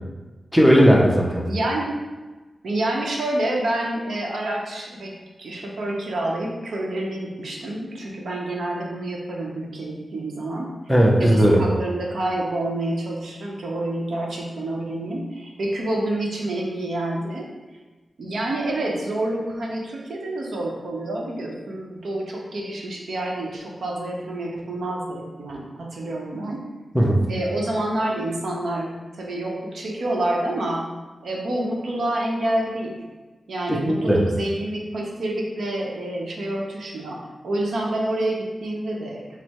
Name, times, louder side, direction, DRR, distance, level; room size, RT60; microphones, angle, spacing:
voice 1, 0.5-1.5 10.9-11.7 26.9-27.3 33.7-34.3, equal, ahead, -2 dB, 0.5 m, -17 dB
voice 2, 1.5-1.9 2.6-5.1 5.4-10.7 11.2-17.5 18.2-26.6 27.3-30.8 31.2-33.0 33.5-39.4, right 1 dB, 75° right, -1 dB, 0.7 m, -28 dB
4.5 x 2.0 x 4.3 m, 1.2 s
wide cardioid pair, 165°, 0 cm